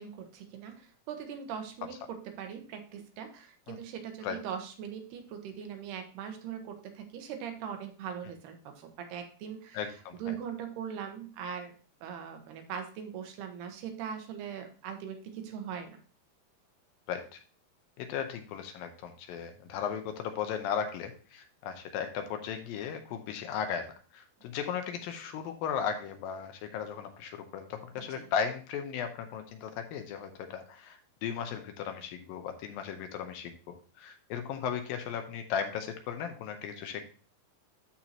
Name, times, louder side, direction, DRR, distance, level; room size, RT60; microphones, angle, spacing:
voice 1, 0.0-11.7 12.0-16.0 28.1-28.3, right 8 dB, 80° right, 5 dB, 3.2 m, -41 dB
voice 2, 9.7-10.4 17.1-17.4 18.0-37.0, left 7 dB, 80° left, 6 dB, 2.3 m, -36 dB
13.0 x 4.4 x 2.9 m, 0.40 s
omnidirectional pair, 4.5 m